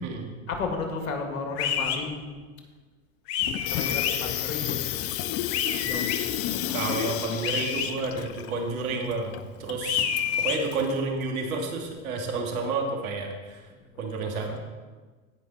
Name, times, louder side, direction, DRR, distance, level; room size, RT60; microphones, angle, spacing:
voice 1, 0.5-2.3 3.7-4.9 5.7-6.2 6.5-6.8 14.1-14.6, left 4 dB, 80° left, 3 dB, 2.1 m, -34 dB
sound 1, 1.6-2.0 3.3-4.2 5.5-6.2 7.4-7.9 9.8-10.6, left 8 dB, 60° left, 1.3 m, -28 dB
Water tap faucet / Sink (filling or washing), 3.4-11.0, left 12 dB, 35° left, 0.5 m, -32 dB
voice 2, 6.7-10.0 10.4-13.7 14.0-14.6, right 3 dB, 75° right, 2 dB, 2.0 m, -30 dB
17.0 x 5.6 x 4.0 m, 1.4 s
hypercardioid pair, 95°, 42 cm